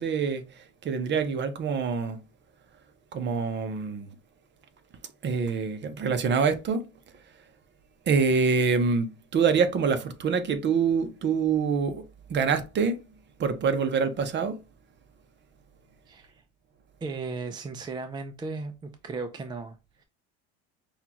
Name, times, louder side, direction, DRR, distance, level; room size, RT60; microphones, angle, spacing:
voice 1, 0.0-2.2 3.1-4.1 5.2-6.8 8.1-12.0 12.3-13.0 13.4-14.6, right 5 dB, 35° right, 0.7 m, -25 dB
voice 2, 16.1-16.4 17.0-20.0, right 4 dB, 15° right, 0.4 m, -36 dB
5.5 x 2.3 x 2.9 m
supercardioid pair, 95°, 32 cm